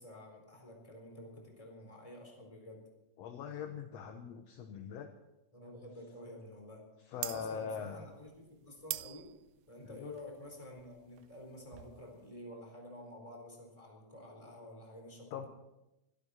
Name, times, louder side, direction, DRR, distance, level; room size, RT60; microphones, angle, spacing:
voice 1, 0.0-2.8 5.5-6.8 7.3-9.3 9.7-15.5, left 1 dB, 10° left, 1 dB, 4.1 m, -50 dB
voice 2, 3.2-5.1 7.1-8.0 9.8-10.1 15.3-15.5, left 7 dB, 70° left, 6 dB, 1.8 m, -42 dB
sound 1, 7.1-12.3, right 15 dB, 75° right, 1.9 m, -45 dB
23.0 x 12.5 x 4.3 m, 0.94 s
omnidirectional pair, 3.6 m